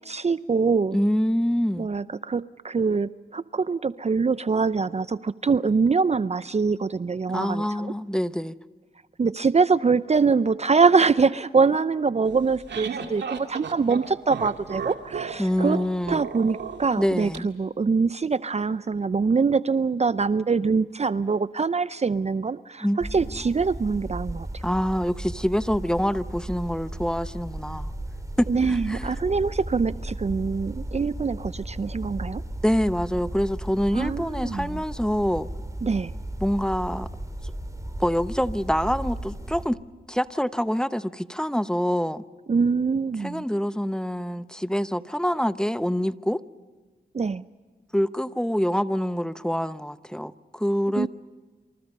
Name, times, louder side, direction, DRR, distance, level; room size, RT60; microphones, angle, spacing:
voice 1, 0.1-1.0 1.8-7.9 9.2-15.8 16.1-24.6 28.5-32.4 33.9-34.8 35.8-36.1 42.5-43.4 47.1-47.4 51.0-51.1, right 5 dB, 35° right, 0.6 m, -24 dB
voice 2, 0.9-1.9 7.3-8.5 15.4-16.2 17.0-17.5 22.8-23.2 24.6-27.9 28.4-29.1 32.6-35.5 36.4-37.1 38.0-39.8 40.1-42.2 43.2-46.4 47.9-51.1, equal, 5° left, 1.0 m, -26 dB
sound 1, 12.3-17.4, right 6 dB, 75° right, 2.0 m, -34 dB
sound 2, 23.0-39.7, right 1 dB, 20° right, 3.5 m, -35 dB
27.0 x 27.0 x 5.4 m
cardioid pair, 45°, 18 cm